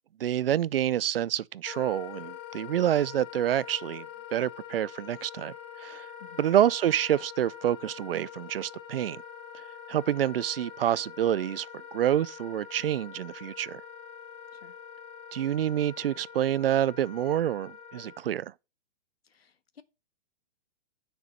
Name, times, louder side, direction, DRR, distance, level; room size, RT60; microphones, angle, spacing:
voice 1, 0.2-4.1 4.3-6.1 6.4-9.2 9.9-11.7 11.9-13.8 15.3-18.5, right 11 dB, 70° right, 0.6 m, -27 dB
Wind instrument woodwind instrument, 1.6-18.2, left 8 dB, 45° left, 1.8 m, -45 dB
voice 2, 19.2-19.8, left 7 dB, 80° left, 1.6 m, -54 dB
9.4 x 6.1 x 5.2 m
hypercardioid pair, 130°, 30 cm